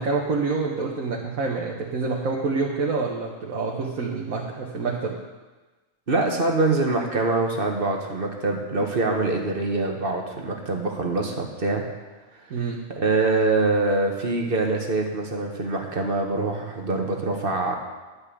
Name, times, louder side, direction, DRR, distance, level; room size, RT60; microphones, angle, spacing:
voice 1, 0.0-5.1 12.5-12.8, right 4 dB, 75° right, -2 dB, 1.6 m, -27 dB
voice 2, 6.1-11.8 12.9-17.8, right 3 dB, 45° right, 2 dB, 1.5 m, -24 dB
11.5 x 5.5 x 8.4 m, 1.2 s
omnidirectional pair, 1.4 m